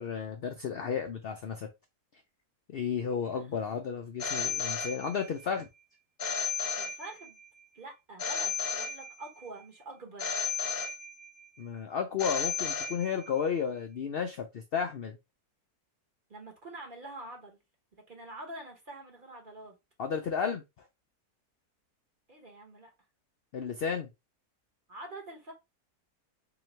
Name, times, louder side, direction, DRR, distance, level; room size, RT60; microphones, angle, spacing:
voice 1, 0.0-1.7 2.7-5.7 11.6-15.2 20.0-20.6 23.5-24.1, left 7 dB, 75° left, 0.5 m, -33 dB
voice 2, 3.2-3.6 6.8-7.4 7.7-10.3 16.3-17.6 18.1-19.7 22.3-22.9 24.9-25.5, right 2 dB, 40° right, 1.1 m, -46 dB
Telephone, 4.2-5.4 6.2-7.4 8.2-9.4 10.2-11.4 12.2-13.4, left 6 dB, 45° left, 0.9 m, -34 dB
3.9 x 3.0 x 3.0 m
omnidirectional pair, 1.6 m